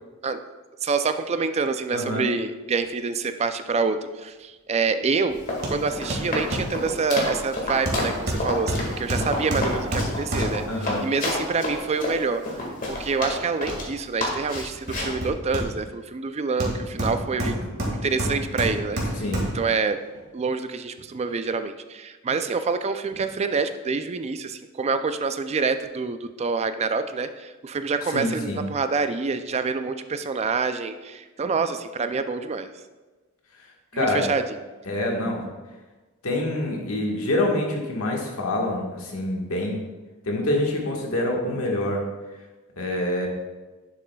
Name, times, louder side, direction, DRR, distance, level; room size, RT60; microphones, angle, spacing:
voice 1, 0.8-5.4 5.7-17.6 18.0-19.0 19.5-20.0 20.3-32.7 33.9-34.4, right 4 dB, 30° right, 10 dB, 0.4 m, -27 dB
voice 2, 1.9-2.2 10.7-11.0 19.2-19.4 28.1-28.6 33.9-34.3 34.8-35.4 36.2-39.8 40.2-42.0 42.8-43.3, left 1 dB, 90° left, 0 dB, 1.5 m, -26 dB
Run, 5.3-13.9 14.2-15.2, left 1 dB, 40° left, 1.8 m, -29 dB
Hammer, 5.6-5.8 6.1-6.8 7.9-10.8 14.5-16.0 16.6-19.7 20.1-20.2, equal, 50° right, 1.9 m, -28 dB
10.5 x 7.4 x 2.3 m, 1.2 s
head